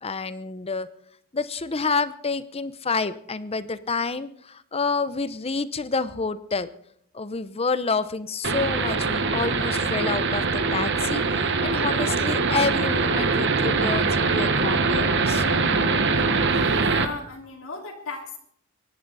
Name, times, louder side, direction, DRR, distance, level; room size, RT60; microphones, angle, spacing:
voice 1, 0.0-0.9 1.3-6.7 7.1-15.7, left 4 dB, 30° left, 14 dB, 0.8 m, -28 dB
sound 1, 8.4-17.1, right 4 dB, 55° right, 1.5 m, -23 dB
voice 2, 16.5-18.4, left 3 dB, 70° left, -1 dB, 2.9 m, -36 dB
24.5 x 11.0 x 4.2 m, 0.66 s
head